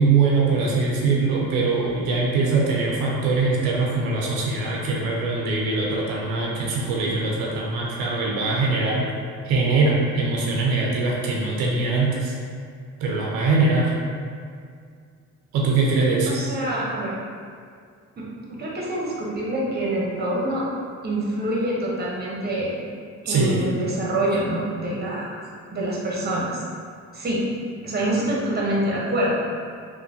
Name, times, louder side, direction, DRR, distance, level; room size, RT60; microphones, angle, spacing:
voice 1, 0.0-9.0 9.4-12.3 13.0-13.9 15.5-16.3 23.3-23.6, right 3 dB, 90° right, -3 dB, 0.5 m, -22 dB
voice 2, 16.3-17.2 18.2-18.3 18.6-20.7 21.0-22.8 23.2-25.4 25.7-26.6 27.1-27.5 27.8-29.6, right 1 dB, 30° right, -4 dB, 0.8 m, -26 dB
3.0 x 2.2 x 2.6 m, 2.2 s
supercardioid pair, 60°, 36 cm